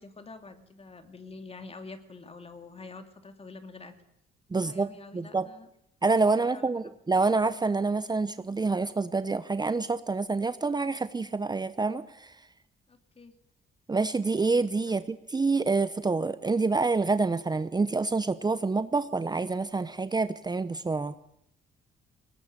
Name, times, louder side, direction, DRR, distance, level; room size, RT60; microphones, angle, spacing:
voice 1, 0.0-3.9 4.6-5.7 6.3-6.7 12.9-13.3, left 3 dB, 30° left, 8 dB, 2.7 m, -46 dB
voice 2, 4.5-5.5 6.0-12.4 13.9-21.1, right 3 dB, 20° right, 13 dB, 0.8 m, -27 dB
21.0 x 19.0 x 8.8 m, 0.75 s
cardioid pair, 90°, 20 cm